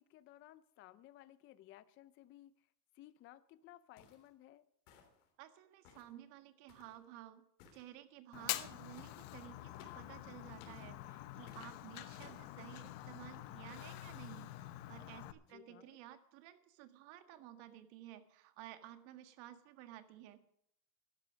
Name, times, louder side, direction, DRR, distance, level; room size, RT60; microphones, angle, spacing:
voice 1, 0.0-2.7 2.9-4.6 15.5-16.0, left 14 dB, 30° left, 15 dB, 0.4 m, -59 dB
sound 1, 4.0-4.3 4.9-5.3 5.8-6.1 6.7-7.0 7.6-7.9 9.0-9.2 9.8-10.1 10.6-10.9 11.5-11.7 12.2-12.5, left 6 dB, 80° left, 3.4 m, -60 dB
voice 2, 5.4-7.4 7.7-20.4, right 13 dB, 65° right, 9 dB, 1.7 m, -54 dB
Fire, 8.3-15.3, left 15 dB, 60° left, 0.9 m, -46 dB
12.5 x 10.5 x 6.3 m, 0.72 s
supercardioid pair, 135°, 45 cm